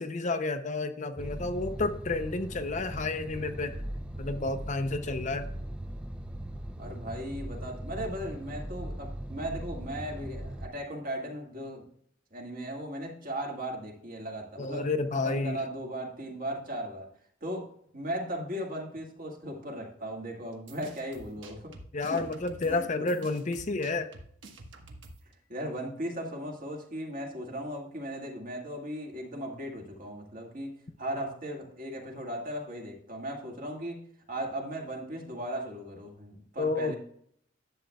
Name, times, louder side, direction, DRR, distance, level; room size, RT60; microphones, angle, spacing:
voice 1, 0.0-3.8 4.2-5.5 14.6-15.6 21.9-24.1 36.6-36.9, left 3 dB, 40° left, 8 dB, 0.6 m, -30 dB
sound 1, 1.2-10.7, right 1 dB, 5° right, 0.5 m, -39 dB
voice 2, 6.8-11.8 12.3-14.9 15.2-17.1 17.4-17.7 17.9-21.7 22.1-22.2 22.6-23.2 25.5-34.0 34.3-37.0, right 1 dB, 45° right, 0 dB, 2.0 m, -37 dB
sound 2, 20.5-25.3, right 2 dB, 70° right, 1.3 m, -49 dB
11.5 x 7.7 x 2.3 m, 0.65 s
head